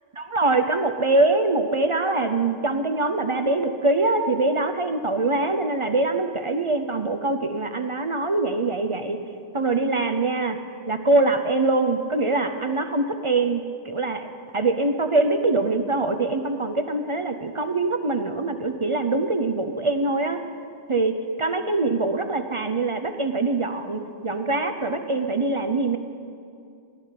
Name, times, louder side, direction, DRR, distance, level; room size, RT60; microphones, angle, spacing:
voice 1, 0.2-9.2 9.5-10.6 10.9-14.3 14.5-20.4 20.9-21.1 21.4-26.0, right 2 dB, 35° right, 7 dB, 0.6 m, -23 dB
17.5 x 11.5 x 5.8 m, 2.4 s
omnidirectional pair, 1.1 m